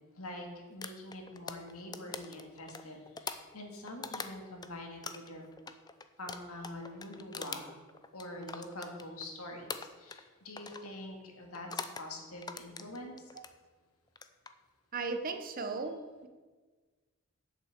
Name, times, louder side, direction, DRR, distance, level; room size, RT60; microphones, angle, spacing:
voice 1, 0.1-5.4 6.2-7.8 8.1-13.3, left 1 dB, 90° left, 2 dB, 2.1 m, -45 dB
sound 1, 0.8-4.7 5.0-9.3 9.7-10.3 10.6-10.9 11.5-12.1 12.4-13.5 14.1-14.5, left 4 dB, 20° left, 0.5 m, -43 dB
voice 2, 14.9-16.0, right 4 dB, 40° right, 6 dB, 1.0 m, -35 dB
8.5 x 7.3 x 7.5 m, 1.4 s
head